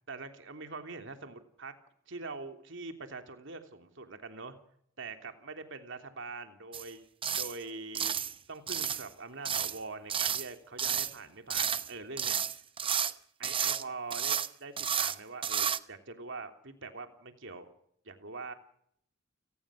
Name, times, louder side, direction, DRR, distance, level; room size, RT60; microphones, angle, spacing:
voice 1, 0.1-1.7 2.1-4.6 5.0-7.0 7.4-8.1 8.5-12.4 13.4-17.7 18.0-18.5, right 3 dB, 60° right, 6 dB, 3.1 m, -43 dB
sound 1, 6.7-6.9 7.2-7.6 7.9-8.3 8.7-9.1 9.4-9.8 10.1-10.5 10.8-11.1 11.5-11.9 12.2-13.1 13.4-13.8 14.1-14.5 14.8-15.2 15.4-15.8, right 8 dB, 25° right, 0.8 m, -31 dB
30.0 x 19.0 x 6.4 m, 0.70 s
head